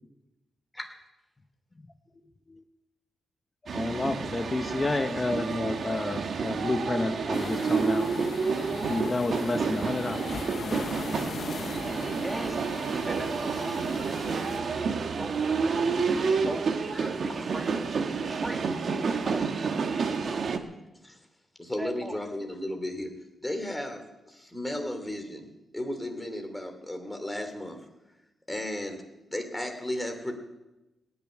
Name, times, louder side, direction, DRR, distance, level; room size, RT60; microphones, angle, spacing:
voice 1, 3.7-8.1 8.5-10.3 10.6-11.1, left 2 dB, 25° left, 9 dB, 1.0 m, -31 dB
sound 1, 3.7-20.6, right 5 dB, 60° right, 1.2 m, -29 dB
sound 2, 7.3-14.6, left 6 dB, 60° left, 0.6 m, -40 dB
voice 2, 12.1-12.6 13.1-20.5 21.8-22.2, right 1 dB, 15° right, 5 dB, 1.4 m, -40 dB
voice 3, 21.6-23.1 23.4-25.5 25.7-27.8 28.5-29.0 29.3-30.3, left 1 dB, 10° left, 5 dB, 2.9 m, -34 dB
18.0 x 7.1 x 9.8 m, 0.99 s
cardioid pair, 95°, 0 cm